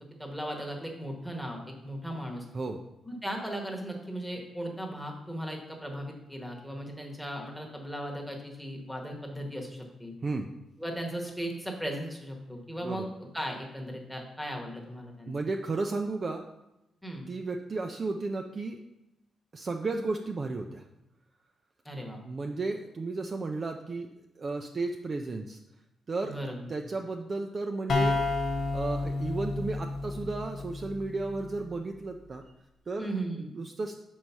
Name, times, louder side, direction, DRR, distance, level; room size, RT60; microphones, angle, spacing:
voice 1, 0.2-2.5 3.0-10.2 10.8-13.1 13.3-15.3 17.0-17.3 21.8-22.2 26.2-26.7 33.0-33.5, right 1 dB, ahead, 1 dB, 1.1 m, -37 dB
voice 2, 15.3-16.5 17.3-18.8 19.5-20.8 22.2-24.1 24.4-25.6 26.1-26.3 26.7-28.2 28.7-32.4 32.9-33.1 33.4-33.9, right 3 dB, 30° right, 3 dB, 0.4 m, -33 dB
sound 1, 27.9-31.5, left 3 dB, 55° left, 0.8 m, -31 dB
6.4 x 4.6 x 5.5 m, 0.90 s
wide cardioid pair, 150°, 0 cm